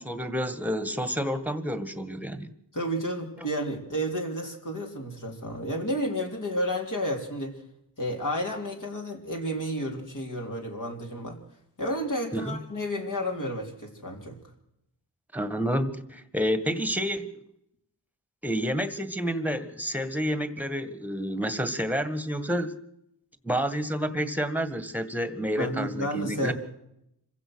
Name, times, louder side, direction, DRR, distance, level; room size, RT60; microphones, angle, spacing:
voice 1, 0.0-2.5 12.3-12.6 15.3-17.3 18.4-22.7 23.4-26.5, equal, 5° right, 11 dB, 1.8 m, -29 dB
voice 2, 2.7-7.6 8.0-11.4 11.8-14.4 25.6-26.5, equal, 50° left, 1 dB, 3.7 m, -31 dB
26.0 x 16.0 x 6.4 m, 0.79 s
wide cardioid pair, 85°, 41 cm